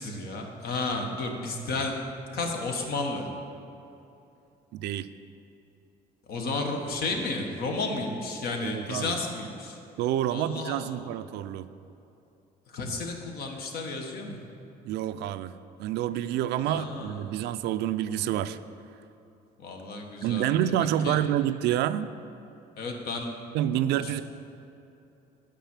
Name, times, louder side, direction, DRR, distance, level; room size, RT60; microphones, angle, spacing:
voice 1, 0.0-2.0 2.3-3.3 6.3-9.7 10.3-10.9 12.7-14.4 16.6-17.3 19.6-20.5 20.8-21.2 22.8-23.4, left 3 dB, 65° left, 2 dB, 1.3 m, -32 dB
voice 2, 4.7-5.1 8.6-9.2 10.0-11.7 14.8-18.6 20.2-22.1 23.5-24.2, right 11 dB, 80° right, 13 dB, 0.4 m, -28 dB
9.1 x 4.9 x 7.3 m, 2.8 s
cardioid pair, 110°, 17 cm